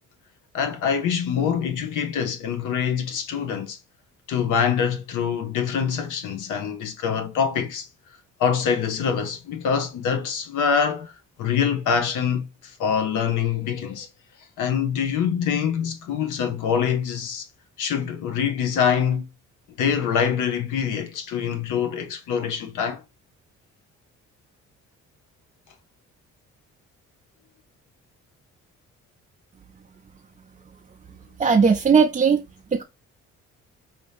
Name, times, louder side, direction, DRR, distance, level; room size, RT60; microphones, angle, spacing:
voice 1, 0.5-3.8 4.3-7.9 8.4-11.1 11.4-14.1 14.6-17.5 17.8-19.3 19.8-23.0, left 7 dB, 85° left, 0.9 m, -25 dB
voice 2, 31.4-32.4 32.7-32.8, right 5 dB, 25° right, 0.6 m, -18 dB
5.2 x 2.8 x 3.4 m
cardioid pair, 90°, 30 cm